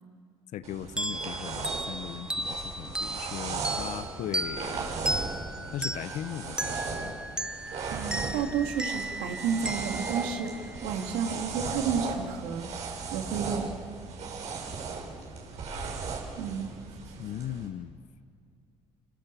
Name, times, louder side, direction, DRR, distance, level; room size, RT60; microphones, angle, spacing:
voice 1, 0.5-4.9 5.7-7.2 17.2-18.0, left 11 dB, 65° left, 15 dB, 1.0 m, -38 dB
sound 1, 0.6-17.7, right 4 dB, 60° right, 7.2 m, -37 dB
sound 2, 1.0-11.2, right 1 dB, 5° right, 0.7 m, -36 dB
voice 2, 7.9-12.7 13.1-13.7 16.4-16.7, right 6 dB, 90° right, 3 dB, 2.8 m, -31 dB
27.5 x 25.0 x 7.0 m, 2.3 s
supercardioid pair, 80°, 13 cm